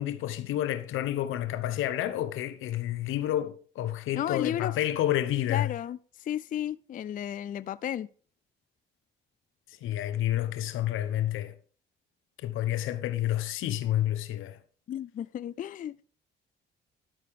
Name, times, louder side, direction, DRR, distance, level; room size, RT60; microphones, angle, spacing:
voice 1, 0.0-5.7 9.7-11.6 12.4-14.6, left 13 dB, 85° left, 0.9 m, -29 dB
voice 2, 4.2-4.7 5.5-8.1 14.9-16.0, left 10 dB, 45° left, 0.4 m, -33 dB
12.0 x 6.5 x 3.6 m
cardioid pair, 90°, 20 cm